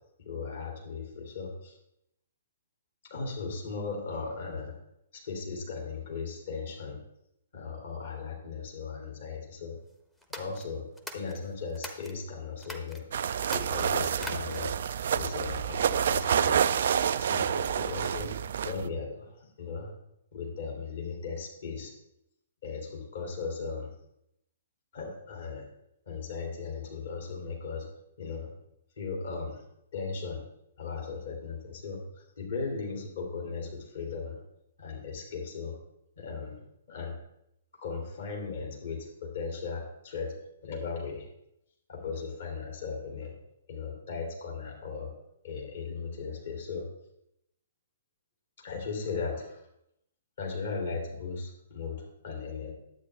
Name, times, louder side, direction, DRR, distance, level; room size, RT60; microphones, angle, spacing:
voice 1, 0.2-1.7 3.1-4.7 5.1-7.0 7.5-9.8 10.3-10.8 11.1-13.0 13.5-14.7 15.1-16.7 17.2-18.3 18.6-19.9 20.3-21.9 22.6-23.9 24.9-25.7 26.1-27.8 28.2-28.5 29.0-29.6 29.9-30.4 30.8-34.4 34.8-35.8 36.2-36.6 36.9-37.2 37.7-40.3 40.6-41.3 41.9-43.4 43.7-45.1 45.4-46.9 48.6-49.6 50.4-52.7, left 5 dB, 55° left, -1 dB, 2.9 m, -37 dB
sound 1, 10.2-12.2 12.6-13.0 13.4-14.8, equal, 5° left, 0.9 m, -43 dB
sound 2, 13.1-18.9, right 8 dB, 50° right, 0.3 m, -28 dB
10.5 x 8.4 x 3.4 m, 0.78 s
figure-of-eight pair, 120°, 0 cm